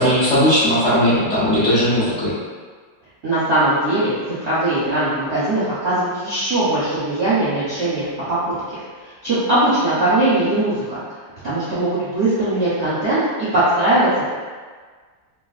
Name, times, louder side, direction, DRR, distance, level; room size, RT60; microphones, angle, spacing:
voice 1, 0.0-2.3, equal, 60° left, -12 dB, 0.8 m, -17 dB
voice 2, 3.2-8.4 8.7-8.8 9.2-11.0 11.4-13.2 13.5-14.3, right 1 dB, 55° right, -12 dB, 0.7 m, -20 dB
3.2 x 2.4 x 2.4 m, 1.5 s
omnidirectional pair, 2.1 m